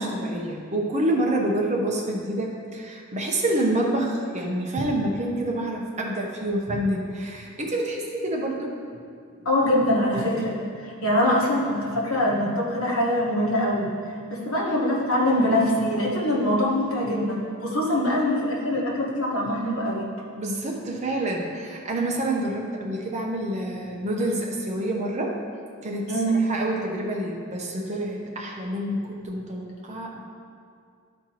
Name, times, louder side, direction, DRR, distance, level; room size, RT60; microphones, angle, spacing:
voice 1, 0.0-8.8 20.4-25.4 25.8-26.1 26.5-30.2, right 1 dB, 30° right, -1 dB, 0.8 m, -27 dB
voice 2, 9.4-13.9 14.3-20.0 26.1-26.4, left 1 dB, 70° left, -4 dB, 1.5 m, -23 dB
12.5 x 4.4 x 3.0 m, 2.3 s
head